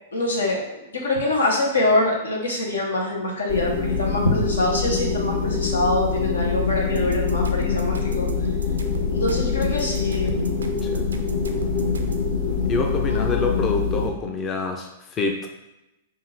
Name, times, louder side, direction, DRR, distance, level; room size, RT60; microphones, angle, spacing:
voice 1, 0.1-0.6 0.9-8.3 9.1-10.3 13.0-13.4, left 2 dB, 90° left, -1 dB, 1.0 m, -24 dB
sound 1, 3.5-14.1, left 5 dB, 60° left, 1.3 m, -24 dB
sound 2, 7.0-12.3, right 3 dB, 90° right, 0.4 m, -36 dB
voice 2, 10.8-11.2 12.6-15.5, left 3 dB, 25° left, 3 dB, 0.5 m, -27 dB
3.6 x 2.5 x 4.5 m, 0.94 s
hypercardioid pair, 115°, 0 cm